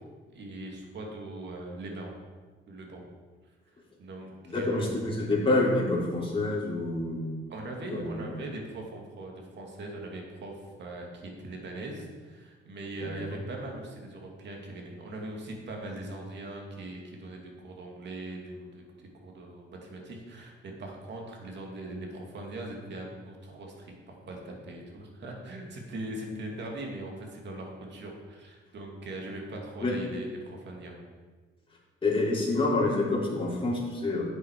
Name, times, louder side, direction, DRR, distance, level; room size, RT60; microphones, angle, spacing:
voice 1, 0.3-2.1 2.7-3.0 4.0-5.0 7.5-31.0, right 1 dB, 65° right, 0 dB, 2.5 m, -40 dB
voice 2, 4.5-7.4 7.9-8.3 13.2-13.3 29.8-30.0 32.0-34.2, left 2 dB, 25° left, -4 dB, 3.6 m, -27 dB
10.5 x 8.1 x 4.8 m, 1.4 s
cardioid pair, 90°, 20 cm